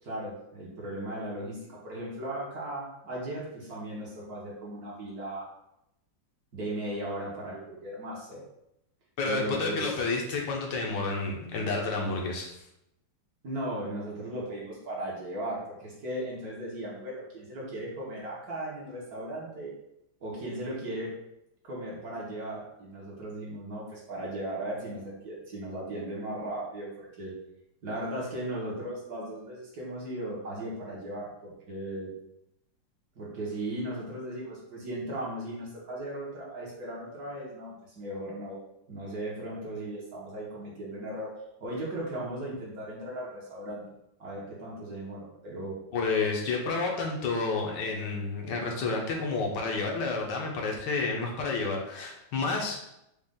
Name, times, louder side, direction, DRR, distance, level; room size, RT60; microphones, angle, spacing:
voice 1, 0.0-5.5 6.5-8.4 9.2-10.0 13.4-19.7 20.2-21.1 21.6-27.3 27.8-32.1 33.1-38.6 38.9-41.3 41.6-43.8 44.2-45.8, right 1 dB, 55° right, -5 dB, 1.4 m, -37 dB
voice 2, 9.2-12.5 45.9-52.9, left 3 dB, 70° left, 0 dB, 1.3 m, -30 dB
5.1 x 2.4 x 3.6 m, 0.83 s
omnidirectional pair, 2.1 m